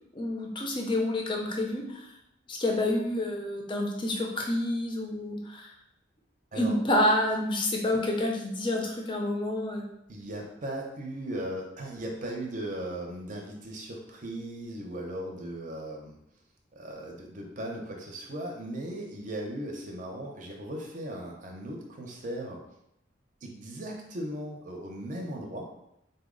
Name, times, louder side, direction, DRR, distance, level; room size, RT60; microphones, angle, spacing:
voice 1, 0.1-2.1 2.5-5.7 6.5-9.9, left 1 dB, 25° left, 0 dB, 0.5 m, -28 dB
voice 2, 10.1-16.2 16.7-22.6 23.4-25.7, right 1 dB, 45° right, 0 dB, 0.6 m, -37 dB
3.9 x 2.0 x 3.7 m, 0.80 s
head